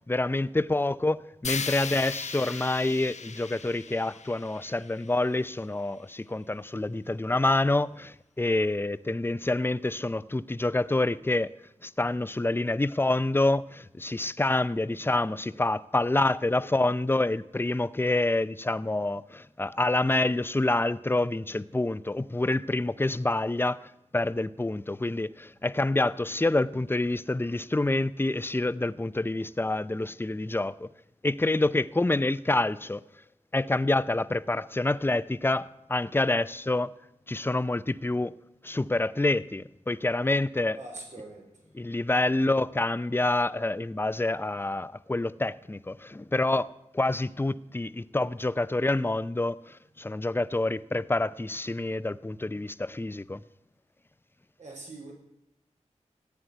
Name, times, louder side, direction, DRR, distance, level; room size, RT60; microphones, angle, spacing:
voice 1, 0.1-11.5 11.8-30.9 31.2-33.0 33.5-36.9 37.3-38.3 38.6-40.8 41.7-46.7 46.9-53.4, left 2 dB, 20° left, 0.6 m, -27 dB
sound 1, 1.4-5.5, left 5 dB, 70° left, 0.7 m, -37 dB
voice 2, 40.7-41.6 54.6-55.1, right 2 dB, 85° right, 5.1 m, -43 dB
15.0 x 9.5 x 9.3 m
wide cardioid pair, 60°, 12 cm